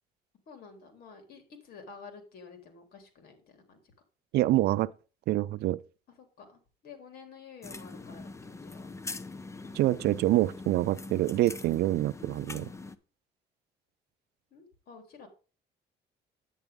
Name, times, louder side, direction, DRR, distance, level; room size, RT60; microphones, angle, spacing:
voice 1, 0.5-3.9 6.2-8.3 8.6-8.9 14.5-15.3, left 5 dB, 65° left, 3.7 m, -50 dB
voice 2, 4.3-4.9 5.3-5.8 9.7-12.7, right 16 dB, 75° right, 0.5 m, -26 dB
sound 1, 7.6-13.0, left 3 dB, 15° left, 0.8 m, -43 dB
10.0 x 9.2 x 3.6 m
cardioid pair, 110°, 17 cm